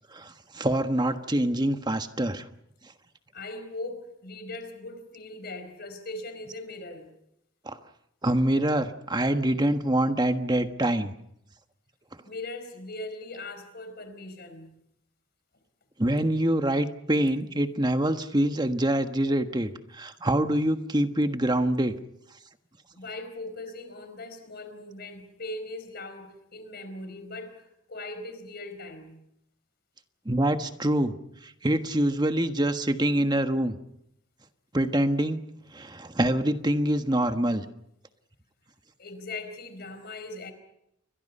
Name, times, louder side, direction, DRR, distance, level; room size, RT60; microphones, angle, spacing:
voice 1, 0.1-2.4 7.6-7.8 8.2-11.1 16.0-21.9 30.2-31.1 31.4-33.8 34.7-35.4 35.7-37.6, right 1 dB, 20° right, 1.4 m, -25 dB
voice 2, 3.3-7.1 12.2-14.8 22.9-29.2 39.0-40.5, left 2 dB, 50° left, 4.6 m, -40 dB
29.0 x 23.0 x 5.6 m
head